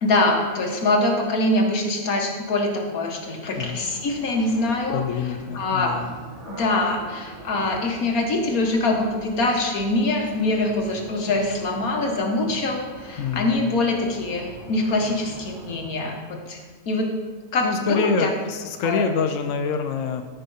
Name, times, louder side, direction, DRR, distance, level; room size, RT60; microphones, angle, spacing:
voice 1, 0.0-5.0 5.5-6.0 6.5-16.6 16.9-17.1 17.5-18.3 18.8-19.1, left 2 dB, 90° left, 2 dB, 1.8 m, -24 dB
sound 1, 3.5-15.9, right 2 dB, 55° right, 3.1 m, -43 dB
voice 2, 4.9-6.1 13.2-13.6 17.6-20.3, left 5 dB, 65° left, 6 dB, 1.0 m, -26 dB
12.5 x 5.6 x 5.5 m, 1.4 s
omnidirectional pair, 1.5 m